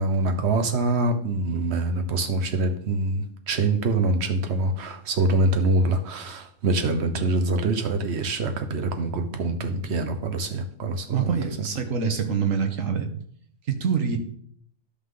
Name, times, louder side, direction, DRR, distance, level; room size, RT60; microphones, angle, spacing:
voice 1, 0.0-11.4, right 2 dB, 55° right, 7 dB, 1.2 m, -25 dB
voice 2, 11.1-13.1 13.7-14.2, right 6 dB, 70° right, 6 dB, 1.5 m, -25 dB
12.0 x 5.7 x 3.8 m, 0.62 s
omnidirectional pair, 1.4 m